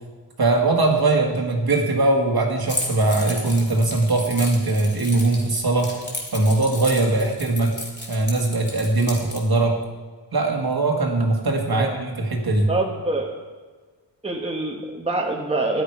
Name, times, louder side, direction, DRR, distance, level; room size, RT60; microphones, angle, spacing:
voice 1, 0.4-6.0 6.3-7.8 8.1-9.8 10.3-12.7, right 2 dB, 55° right, 1 dB, 1.9 m, -21 dB
Keys jangling, 2.7-9.4, left 2 dB, 25° left, 2.3 m, -34 dB
voice 2, 12.7-13.4 14.2-15.8, right 2 dB, 15° right, 0 dB, 1.2 m, -25 dB
13.0 x 11.0 x 4.7 m, 1.4 s
wide cardioid pair, 165°, 44 cm